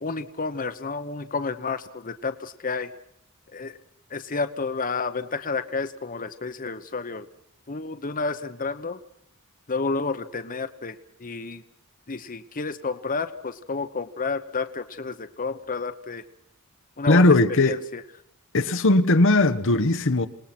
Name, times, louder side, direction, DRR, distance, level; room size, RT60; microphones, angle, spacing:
voice 1, 0.0-2.9 3.5-3.7 4.1-7.3 7.7-9.0 9.7-11.6 12.1-16.2 17.0-17.3 17.6-18.0, left 4 dB, 40° left, 1.1 m, -30 dB
voice 2, 17.1-17.8 18.5-20.3, left 2 dB, 60° left, 1.2 m, -18 dB
28.0 x 19.5 x 6.1 m
head